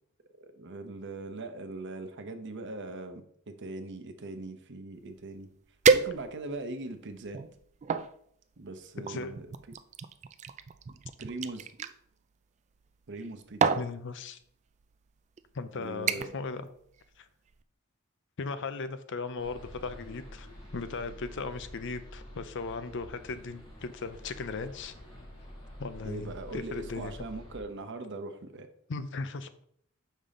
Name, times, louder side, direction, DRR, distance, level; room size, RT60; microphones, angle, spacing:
voice 1, 0.4-5.5 5.9-7.4 8.6-9.5 10.9-11.7 13.1-13.8 15.7-16.3 26.0-28.7, right 2 dB, 60° right, 7 dB, 0.8 m, -40 dB
sound 1, 5.2-5.3 5.8-6.6 7.2-8.1 9.1-11.9 13.0-13.3 13.6-13.9 14.8-15.0 15.4-15.7 16.1-16.5 16.8-17.2 17.5-17.6, right 5 dB, 35° right, 0.3 m, -29 dB
voice 2, 13.7-14.4 15.5-16.7 17.2-17.3 18.4-20.5 20.7-24.9 25.8-27.1 28.9-29.5, left 4 dB, 60° left, 11 dB, 0.6 m, -37 dB
sound 2, 19.4-27.6, equal, 25° left, 2.4 m, -48 dB
6.9 x 5.5 x 3.7 m, 0.66 s
head